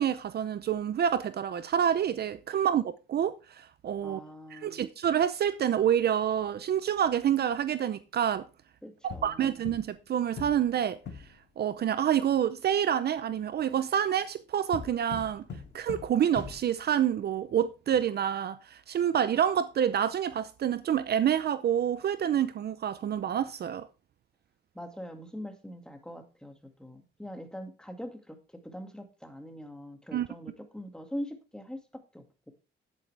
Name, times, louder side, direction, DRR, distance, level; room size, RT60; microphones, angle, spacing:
voice 1, 0.0-4.2 4.5-8.5 9.0-11.0 11.6-15.4 15.7-23.9 30.1-30.3, right 9 dB, 55° right, 0.6 m, -28 dB
voice 2, 4.0-4.8 8.8-9.4 24.7-28.4 28.6-31.8 32.1-32.5, equal, 5° left, 2.1 m, -42 dB
sound 1, 9.1-10.1 10.4-11.4 14.7-17.0, left 5 dB, 65° left, 2.1 m, -42 dB
10.5 x 8.9 x 3.4 m
cardioid pair, 90°, 20 cm